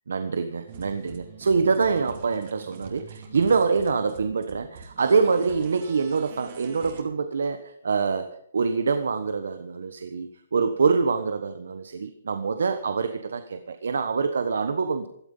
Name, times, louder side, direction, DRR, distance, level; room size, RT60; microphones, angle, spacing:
voice 1, 0.1-8.3 8.5-15.1, right 5 dB, 85° right, 9 dB, 1.2 m, -25 dB
sound 1, 0.7-7.0, right 6 dB, 55° right, 4.2 m, -44 dB
16.5 x 12.5 x 5.5 m, 0.72 s
hypercardioid pair, 150°, 0 cm